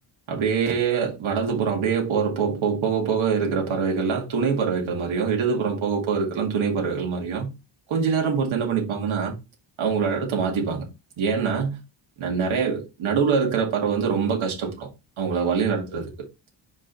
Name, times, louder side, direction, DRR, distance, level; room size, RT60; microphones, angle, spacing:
voice 1, 0.3-7.5 7.9-9.3 9.8-10.9 11.2-11.8 12.2-14.9 15.2-16.1, right 6 dB, 75° right, 2.4 m, -24 dB
5.2 x 5.2 x 4.0 m
wide cardioid pair, 165°, 48 cm